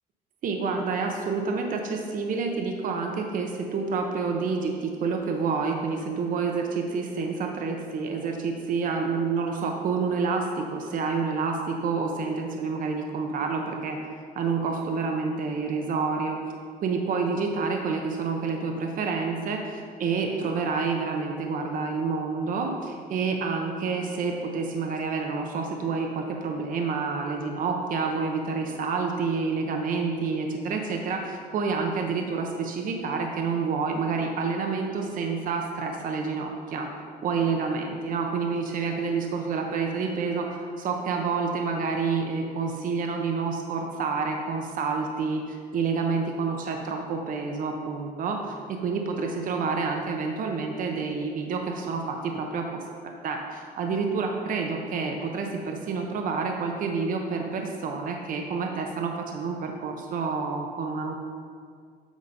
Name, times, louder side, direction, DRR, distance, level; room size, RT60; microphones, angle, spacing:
voice 1, 0.4-14.0 14.3-16.4 16.8-36.9 37.2-48.5 48.8-52.8 53.2-61.2, right 4 dB, 55° right, 2 dB, 0.8 m, -28 dB
8.2 x 3.9 x 5.3 m, 2.1 s
cardioid pair, 110°, 17 cm